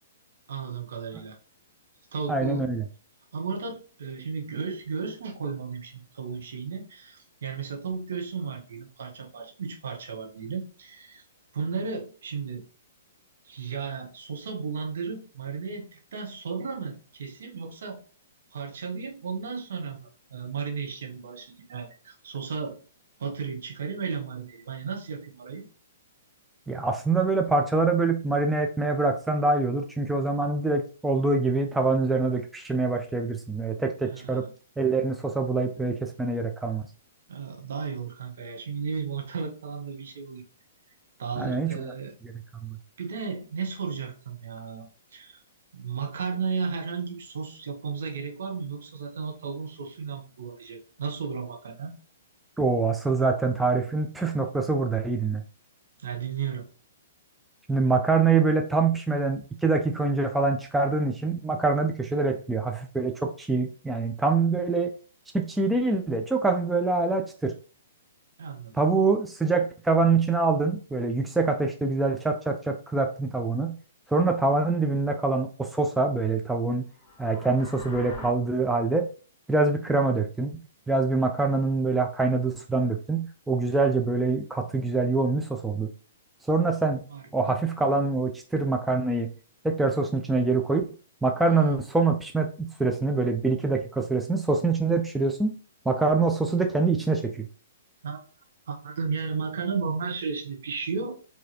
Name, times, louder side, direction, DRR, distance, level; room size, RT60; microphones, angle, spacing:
voice 1, 0.5-1.4 2.1-2.7 3.3-11.2 11.5-12.6 13.4-18.0 18.5-22.8 23.2-25.6 34.1-34.5 37.3-40.4 41.2-42.1 43.0-44.9 45.1-45.4 45.7-51.9 56.0-56.7 68.4-68.7 87.1-87.6 98.0-98.2 98.7-101.2, right 5 dB, 60° right, 3 dB, 1.0 m, -34 dB
voice 2, 2.3-2.8 26.7-34.5 34.8-36.9 41.4-41.9 42.2-42.3 42.6-42.8 52.6-55.4 57.7-64.9 65.3-67.5 68.8-73.8 74.1-76.8 77.2-79.1 79.5-80.6 80.9-85.9 86.4-87.0 87.3-89.3 89.6-90.8 91.2-95.6 95.9-97.5, right 3 dB, 5° right, 3 dB, 0.4 m, -25 dB
sound 1, 76.9-78.3, left 2 dB, 25° left, 2.2 m, -42 dB
4.8 x 2.7 x 3.0 m, 0.38 s
figure-of-eight pair, 115°, 0 cm